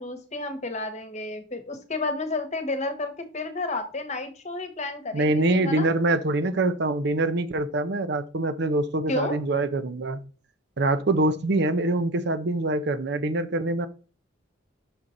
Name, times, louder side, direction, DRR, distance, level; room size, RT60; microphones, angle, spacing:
voice 1, 0.0-5.9 9.1-9.4, left 2 dB, 35° left, 7 dB, 1.2 m, -31 dB
voice 2, 5.1-10.2 10.8-13.9, right 2 dB, 55° right, 12 dB, 0.6 m, -24 dB
6.1 x 5.6 x 3.8 m, 0.37 s
head